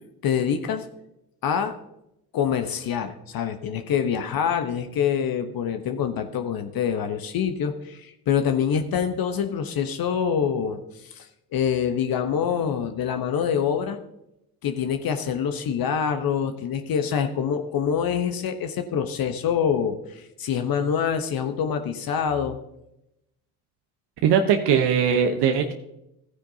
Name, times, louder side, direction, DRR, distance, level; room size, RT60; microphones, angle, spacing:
voice 1, 0.2-0.9 1.4-1.8 2.3-14.0 14.6-22.6, left 7 dB, 50° left, 7 dB, 1.1 m, -25 dB
voice 2, 24.2-25.7, right 7 dB, 60° right, 5 dB, 1.1 m, -20 dB
15.5 x 9.7 x 2.8 m, 0.84 s
hypercardioid pair, 55°, 46 cm